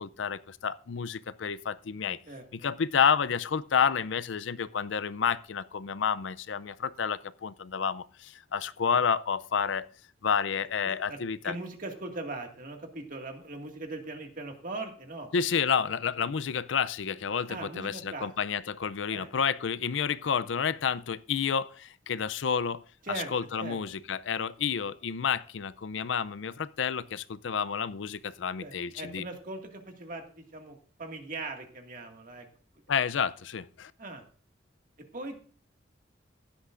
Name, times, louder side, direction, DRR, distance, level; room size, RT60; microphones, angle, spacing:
voice 1, 0.0-2.2 2.5-9.9 10.2-11.5 15.3-22.8 23.1-29.2 32.9-33.9, left 7 dB, 80° left, 0.5 m, -30 dB
voice 2, 10.9-11.2 11.4-15.3 17.5-18.3 19.1-19.3 23.0-23.3 23.6-23.8 28.6-32.5 34.0-34.2 35.1-35.4, right 2 dB, 45° right, 2.0 m, -40 dB
15.5 x 11.5 x 2.5 m
head